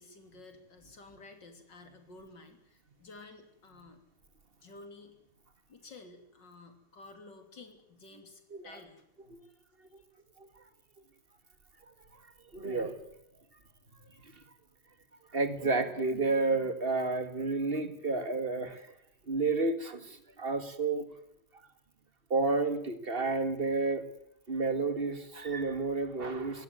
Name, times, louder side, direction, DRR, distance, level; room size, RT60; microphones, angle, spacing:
voice 1, 0.0-4.0 4.6-5.2 5.7-9.0 9.4-9.6 10.0-10.1, left 3 dB, 90° left, 6 dB, 3.8 m, -52 dB
voice 2, 12.5-13.0 14.1-14.4 15.3-19.0 19.3-21.1 22.3-24.1 24.5-26.6, right 3 dB, 30° right, 10 dB, 2.3 m, -31 dB
21.5 x 18.0 x 9.4 m, 0.77 s
omnidirectional pair, 1.9 m